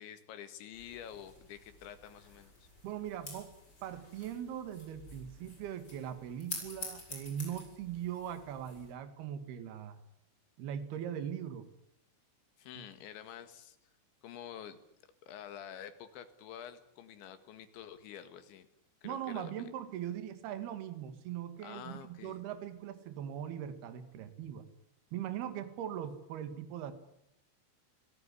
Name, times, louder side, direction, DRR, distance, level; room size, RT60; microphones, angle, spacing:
voice 1, 0.0-2.7 12.6-13.8 14.2-14.8 15.2-18.7 19.0-19.7 21.6-22.4, left 9 dB, 70° left, 10 dB, 4.0 m, -48 dB
sound 1, 0.7-8.9, left 2 dB, 20° left, 7.5 m, -49 dB
voice 2, 2.8-3.5 3.8-10.0 10.6-11.7 12.8-12.9 19.0-24.7 25.1-26.9, right 10 dB, 60° right, 10 dB, 3.6 m, -40 dB
29.0 x 17.5 x 9.9 m, 0.80 s
omnidirectional pair, 5.6 m